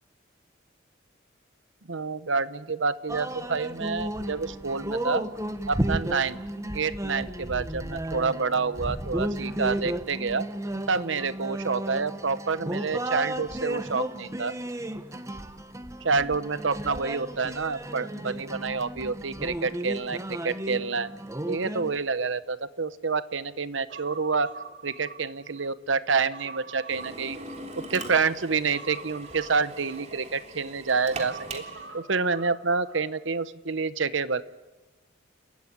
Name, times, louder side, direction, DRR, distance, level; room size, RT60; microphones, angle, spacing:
voice 1, 1.9-5.3 5.7-6.4 6.7-10.5 10.9-14.6 16.0-21.1 21.5-24.5 24.8-27.4 27.9-31.6 31.9-34.4, right 4 dB, 75° right, 15 dB, 1.0 m, -28 dB
sound 1, 3.1-22.0, right 1 dB, 15° right, 1.0 m, -33 dB
Human voice, 23.9-25.7 26.1-28.1 28.7-30.5 31.1-33.1 33.4-33.5, right 5 dB, 60° right, 2.6 m, -45 dB
Drill, 26.9-32.0, right 2 dB, 35° right, 3.4 m, -41 dB
29.5 x 14.5 x 9.6 m, 1.1 s
head